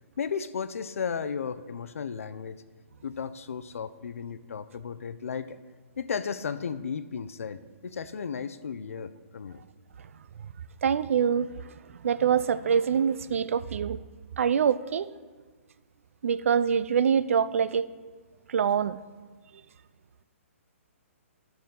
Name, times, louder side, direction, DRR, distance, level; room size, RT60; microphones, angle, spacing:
voice 1, 0.2-2.6 3.0-5.6 6.0-9.6, left 6 dB, 75° left, 13 dB, 0.5 m, -34 dB
voice 2, 10.8-11.5 12.0-14.0 14.4-15.1 16.2-17.9 18.5-19.0, right 7 dB, 70° right, 16 dB, 0.4 m, -24 dB
12.0 x 7.0 x 3.8 m, 1.4 s
hypercardioid pair, 150°, 8 cm